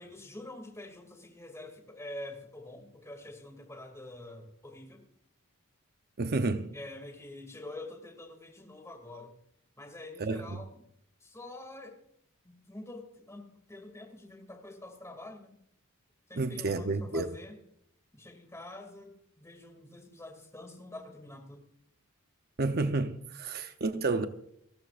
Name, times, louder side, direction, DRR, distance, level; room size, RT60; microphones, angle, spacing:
voice 1, 0.0-5.0 6.7-9.3 9.8-10.8 11.2-12.0 12.4-15.5 16.3-17.6 18.1-21.7, left 1 dB, 15° left, 2.5 m, -46 dB
voice 2, 6.2-6.7 10.2-10.6 16.4-17.4 22.6-24.3, right 3 dB, 45° right, 0.8 m, -30 dB
30.0 x 13.5 x 2.5 m
head